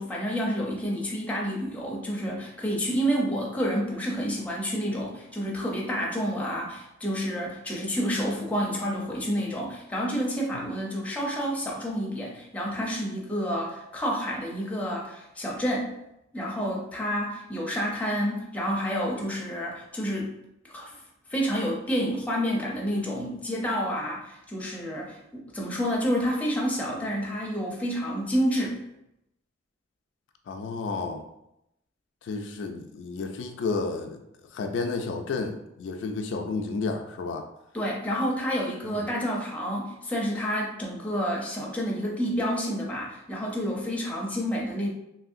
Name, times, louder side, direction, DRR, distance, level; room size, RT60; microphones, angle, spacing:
voice 1, 0.0-15.9 16.3-20.3 20.6-21.0 21.3-28.8 37.7-44.9, equal, 5° left, -3 dB, 0.5 m, -29 dB
voice 2, 30.5-31.2 32.2-34.2 34.5-37.4 39.0-39.1, left 4 dB, 70° left, 5 dB, 0.3 m, -31 dB
3.0 x 2.7 x 2.5 m, 0.83 s
head